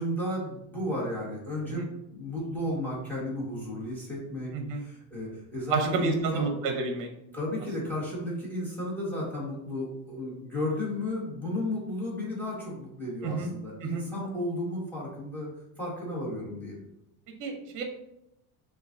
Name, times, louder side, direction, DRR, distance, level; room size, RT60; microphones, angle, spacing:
voice 1, 0.0-4.5 4.7-6.4 7.3-15.5 15.8-16.8, left 1 dB, 5° left, -7 dB, 1.5 m, -33 dB
voice 2, 5.7-7.1 13.2-13.5 13.8-14.0 17.4-17.8, right 4 dB, 50° right, 4 dB, 0.8 m, -30 dB
6.5 x 2.4 x 2.6 m, 0.85 s
cardioid pair, 150°, 39 cm